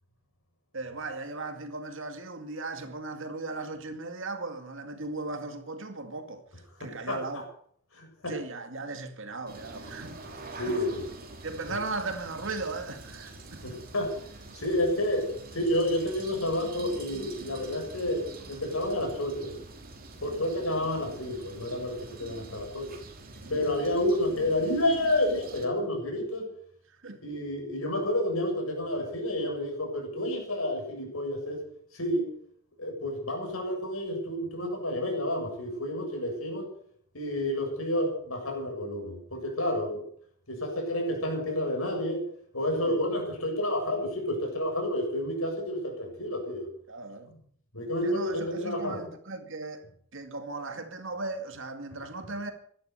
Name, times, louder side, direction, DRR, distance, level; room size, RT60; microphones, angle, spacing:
voice 1, 0.7-6.4 6.8-7.5 8.3-10.8 11.4-13.6 20.3-20.4 23.4-23.6 26.9-27.2 42.8-43.0 46.9-47.3 48.0-49.8 50.1-52.5, right 3 dB, 65° right, 2.3 m, -37 dB
voice 2, 6.8-7.4 7.9-8.4 10.6-11.0 13.6-14.1 14.5-19.5 20.2-22.9 23.5-26.5 27.2-31.6 31.9-32.3 32.8-36.7 37.1-40.0 40.5-42.2 42.5-46.7 47.7-49.0, left 1 dB, 85° left, 7.5 m, -30 dB
sound 1, 9.5-25.7, right 2 dB, 45° right, 3.3 m, -46 dB
17.0 x 12.0 x 6.8 m
head